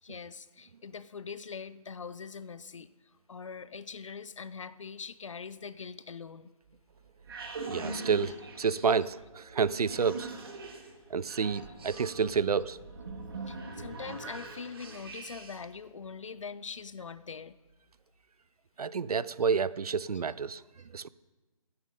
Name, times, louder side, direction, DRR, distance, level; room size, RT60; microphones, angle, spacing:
voice 1, 0.0-2.9 3.3-6.5 8.4-8.5 8.9-9.3 9.9-10.0 11.5-11.8 13.5-17.5 19.4-19.5 20.1-20.2, left 5 dB, 55° left, 16 dB, 0.6 m, -43 dB
sound 1, 6.7-15.7, right 3 dB, 40° right, 1.6 m, -43 dB
voice 2, 7.7-10.3 11.1-12.8 18.8-20.6 20.9-21.1, right 5 dB, 90° right, 19 dB, 0.5 m, -29 dB
13.5 x 9.0 x 5.3 m, 1.2 s
hypercardioid pair, 170°, 19 cm